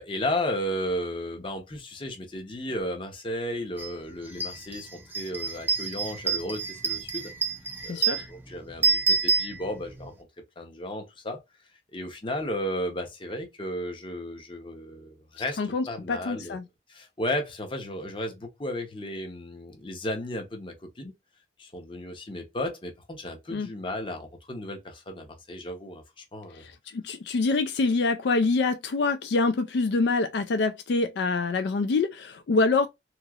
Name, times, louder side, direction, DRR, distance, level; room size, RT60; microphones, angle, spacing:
voice 1, 0.0-7.3 7.8-10.1 10.6-11.4 11.9-16.6 16.9-21.1 21.6-26.7, left 1 dB, 30° left, 0.7 m, -34 dB
sound 1, 3.8-3.9 4.3-10.1, right 5 dB, 10° right, 0.4 m, -28 dB
voice 2, 7.9-8.3 15.6-16.6 23.5-23.7 26.6-32.9, left 3 dB, 65° left, 0.4 m, -25 dB
3.0 x 2.7 x 2.3 m
head